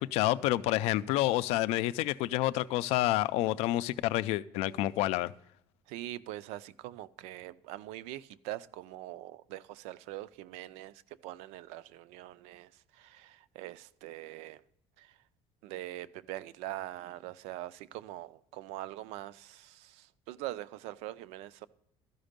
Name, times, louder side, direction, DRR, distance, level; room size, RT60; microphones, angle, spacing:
voice 1, 0.0-5.3, left 16 dB, 75° left, 0.4 m, -29 dB
voice 2, 5.9-14.6 15.0-15.1 15.6-21.7, right 15 dB, 90° right, 0.4 m, -43 dB
13.0 x 5.2 x 5.1 m
cardioid pair, 165°, 11 cm